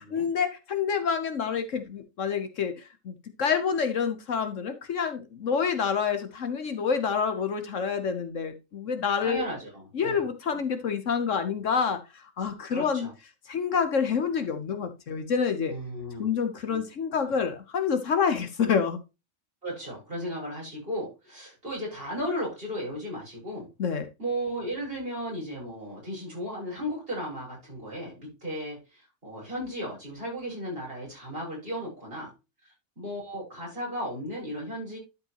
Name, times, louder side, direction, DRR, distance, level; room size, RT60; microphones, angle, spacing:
voice 1, 0.1-9.4 9.9-13.1 13.5-15.7 16.2-19.0 23.8-24.1, left 6 dB, 65° left, 8 dB, 1.3 m, -28 dB
voice 2, 9.2-10.2 12.7-13.1 15.7-16.3 16.7-17.3 19.6-23.7 24.2-32.3 33.0-35.0, equal, 40° right, -3 dB, 6.3 m, -35 dB
12.0 x 5.2 x 3.0 m, 0.27 s
omnidirectional pair, 1.4 m